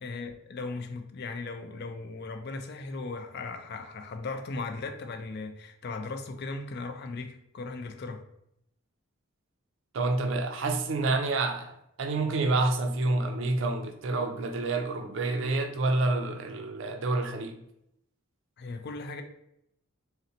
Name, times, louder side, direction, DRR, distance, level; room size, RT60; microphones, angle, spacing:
voice 1, 0.0-8.2 18.6-19.2, left 3 dB, 50° left, 0.4 m, -37 dB
voice 2, 9.9-17.6, right 2 dB, 60° right, 0.4 m, -28 dB
3.9 x 2.1 x 2.7 m
head